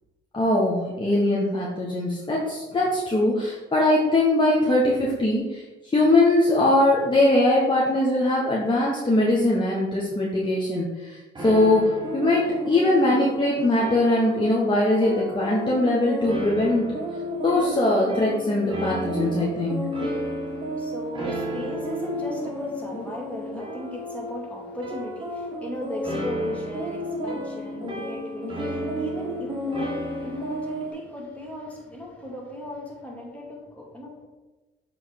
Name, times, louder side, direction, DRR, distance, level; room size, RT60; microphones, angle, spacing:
voice 1, 0.3-16.9 17.4-19.8, left 1 dB, 25° left, -5 dB, 1.4 m, -21 dB
sound 1, 11.3-30.9, equal, 25° right, 1.8 m, -32 dB
voice 2, 20.2-34.3, left 1 dB, 5° left, -3 dB, 2.3 m, -37 dB
7.4 x 3.7 x 4.8 m, 1.1 s
cardioid pair, 90°, 20 cm